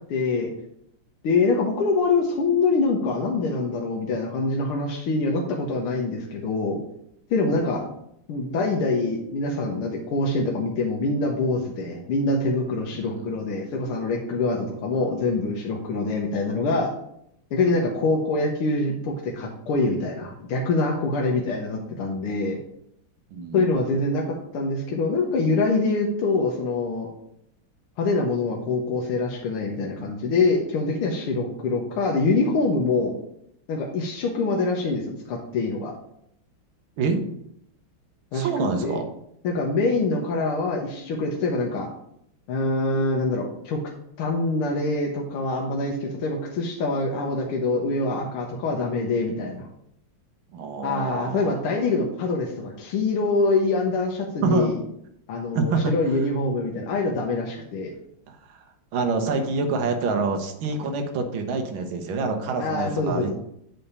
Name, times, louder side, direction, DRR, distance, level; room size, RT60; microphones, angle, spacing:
voice 1, 0.1-0.5 1.2-6.8 7.3-7.8 8.3-16.9 17.5-22.6 23.5-24.2 24.5-27.1 28.0-33.1 33.7-35.0 35.3-35.9 38.3-38.5 38.8-39.0 39.4-41.9 42.5-43.8 44.2-49.7 50.8-54.8 55.3-57.9 62.6-63.3, left 3 dB, 80° left, -1 dB, 1.8 m, -24 dB
voice 2, 12.9-13.3 23.3-23.7 37.0-37.2 38.3-39.1 50.5-51.6 54.4-54.7 55.5-55.9 58.3-58.6 58.9-63.3, right 4 dB, 70° right, 5 dB, 1.7 m, -26 dB
8.3 x 3.4 x 5.4 m, 0.75 s
omnidirectional pair, 2.4 m